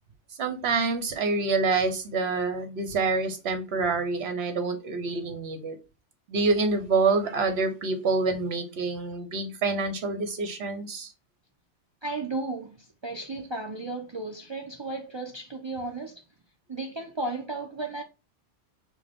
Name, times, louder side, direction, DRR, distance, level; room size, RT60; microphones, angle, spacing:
voice 1, 0.4-5.8 6.3-11.1, right 4 dB, 65° right, 1.0 m, -27 dB
voice 2, 12.0-16.2 16.7-18.0, right 2 dB, 40° right, 0.3 m, -34 dB
6.2 x 2.2 x 3.5 m
omnidirectional pair, 1.2 m